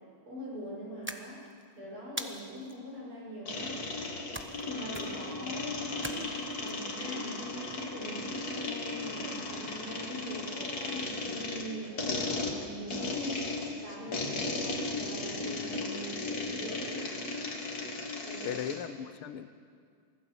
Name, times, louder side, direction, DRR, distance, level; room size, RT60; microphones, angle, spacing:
voice 1, 0.3-1.4 1.8-4.1 4.6-17.1 18.2-18.6, equal, 75° right, -4 dB, 7.4 m, -42 dB
sound 1, 1.0-1.6 2.2-2.8 4.3-4.7 4.9-5.3 6.0-6.7, right 1 dB, 20° right, 0.3 m, -41 dB
sound 2, 3.5-18.9, left 3 dB, 45° left, 2.4 m, -36 dB
sound 3, 4.9-10.7, left 2 dB, 60° left, 4.0 m, -53 dB
voice 2, 18.4-19.5, left 9 dB, 80° left, 11 dB, 1.8 m, -38 dB
24.5 x 16.5 x 7.2 m, 2.2 s
omnidirectional pair, 2.4 m